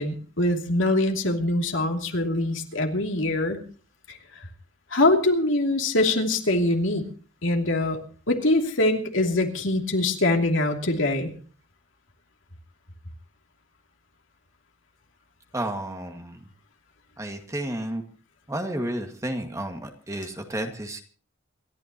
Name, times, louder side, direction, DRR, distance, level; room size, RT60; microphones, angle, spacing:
voice 1, 0.0-3.6 4.1-4.2 4.9-7.1 7.4-8.0 8.3-11.3, left 2 dB, 65° left, 2 dB, 2.9 m, -23 dB
voice 2, 15.5-16.4 17.2-18.0 18.5-21.0, right 1 dB, 15° right, 4 dB, 2.0 m, -31 dB
28.0 x 13.0 x 3.0 m, 0.40 s
head